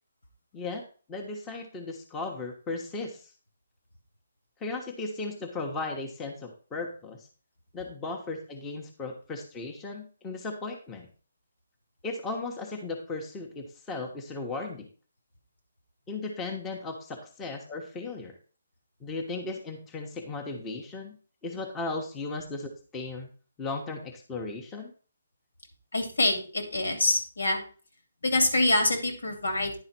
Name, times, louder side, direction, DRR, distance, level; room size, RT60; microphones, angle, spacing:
voice 1, 1.1-3.3 4.6-7.3 7.7-11.1 12.0-14.9 16.1-18.4 19.0-21.1 21.4-23.3 23.6-24.9, left 3 dB, 15° left, 2 dB, 1.2 m, -36 dB
voice 2, 25.9-27.6 28.2-29.8, left 2 dB, 85° left, 5 dB, 2.8 m, -25 dB
10.5 x 4.8 x 4.5 m, 0.37 s
hypercardioid pair, 155°, 0 cm